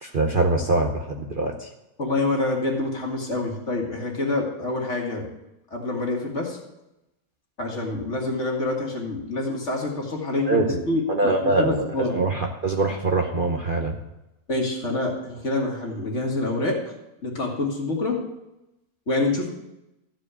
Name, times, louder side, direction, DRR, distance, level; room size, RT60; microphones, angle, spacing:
voice 1, 0.0-1.7 10.4-10.8 11.1-14.0, right 2 dB, 40° right, 2 dB, 0.9 m, -23 dB
voice 2, 2.0-5.2 5.7-6.6 7.6-12.2 14.5-16.8 17.2-18.2 19.1-19.5, left 2 dB, 50° left, -1 dB, 2.3 m, -26 dB
13.5 x 4.9 x 8.2 m, 0.92 s
omnidirectional pair, 1.6 m